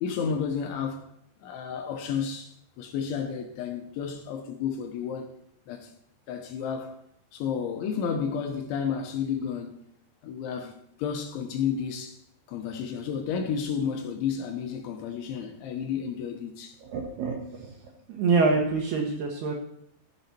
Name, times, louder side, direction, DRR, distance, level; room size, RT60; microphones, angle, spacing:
voice 1, 0.0-1.1 1.4-5.3 5.7-5.9 6.3-6.9 7.3-9.8 10.2-12.2 12.5-16.8, left 7 dB, 75° left, 3.2 m, -31 dB
voice 2, 16.8-17.7 18.1-19.5, right 4 dB, 70° right, 2.6 m, -26 dB
15.0 x 7.0 x 4.4 m
omnidirectional pair, 5.8 m